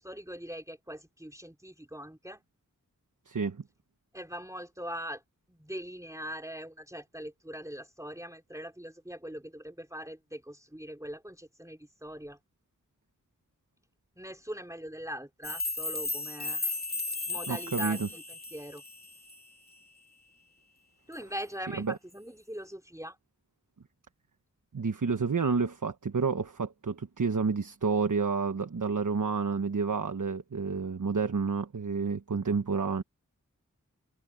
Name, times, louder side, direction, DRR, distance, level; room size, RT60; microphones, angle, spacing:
voice 1, 0.0-2.4 4.1-5.2 5.5-12.4 14.2-16.7 17.3-18.8 21.1-23.2, equal, 10° right, 3.6 m, -41 dB
voice 2, 3.3-3.6 17.5-18.1 21.8-22.0 24.7-33.0, right 5 dB, 75° right, 1.3 m, -29 dB
sound 1, 15.4-19.4, left 2 dB, 30° left, 2.8 m, -35 dB
wide cardioid pair, 55°, 32 cm